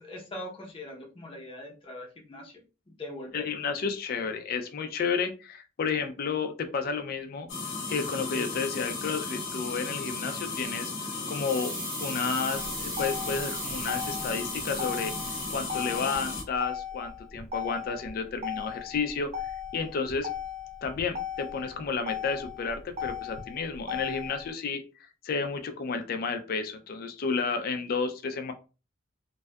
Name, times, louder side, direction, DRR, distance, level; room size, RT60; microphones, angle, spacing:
voice 1, 0.0-2.6 3.0-3.4, left 1 dB, 25° left, -1 dB, 0.7 m, -41 dB
voice 2, 3.3-7.5 7.9-10.9 11.3-11.7 12.0-15.1 15.5-20.3 20.8-24.8 25.2-28.5, left 5 dB, 50° left, 7 dB, 0.3 m, -31 dB
sound 1, 7.5-16.4, left 3 dB, 70° left, 0.7 m, -35 dB
sound 2, 11.3-16.1 16.3-16.4, right 4 dB, 55° right, 1.1 m, -40 dB
Motor vehicle (road), 12.5-24.5, left 8 dB, 35° right, 0.4 m, -37 dB
2.6 x 2.2 x 2.2 m, 0.32 s
head